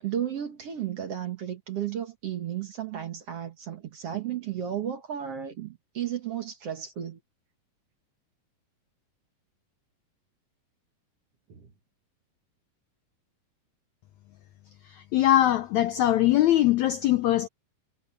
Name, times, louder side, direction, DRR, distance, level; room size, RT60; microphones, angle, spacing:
voice 1, 0.0-7.2 11.5-11.7, right 10 dB, 50° right, 2.1 m, -33 dB
voice 2, 14.9-17.5, left 13 dB, 80° left, 1.6 m, -22 dB
omnidirectional pair, 4.2 m